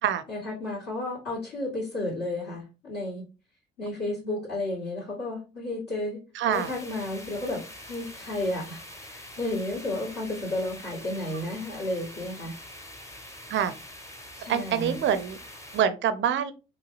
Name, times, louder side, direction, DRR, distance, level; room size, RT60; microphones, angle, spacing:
voice 1, 0.3-3.2 3.8-6.2 6.5-7.6 7.9-12.5 14.3-15.0, left 2 dB, 50° left, -9 dB, 2.1 m, -32 dB
voice 2, 6.4-6.7 13.5-13.7 14.5-15.4 15.7-16.5, right 9 dB, 40° right, 12 dB, 0.6 m, -25 dB
sound 1, 6.5-15.8, left 1 dB, 10° left, 0.9 m, -45 dB
5.5 x 2.4 x 3.1 m, 0.31 s
figure-of-eight pair, 50°, 31 cm